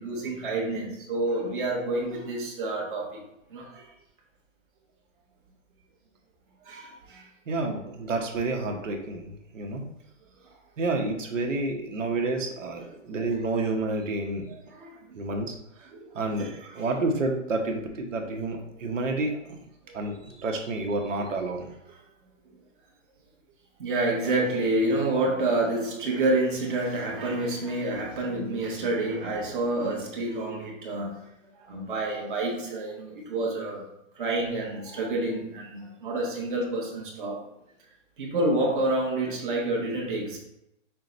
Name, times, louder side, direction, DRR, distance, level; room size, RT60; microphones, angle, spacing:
voice 1, 0.0-3.2 3.5-3.8 6.6-7.2 14.5-15.0 15.9-16.4 16.7-16.8 20.0-20.1 23.8-31.2 31.7-33.8 34.1-37.4 38.2-40.4, right 2 dB, 40° right, -2 dB, 1.2 m, -28 dB
voice 2, 7.5-9.8 10.8-14.4 15.1-15.5 15.8-15.9 16.1-19.6 19.9-21.7, right 2 dB, 80° right, 2 dB, 1.1 m, -29 dB
5.7 x 2.3 x 3.9 m, 0.83 s
hypercardioid pair, 175°, 38 cm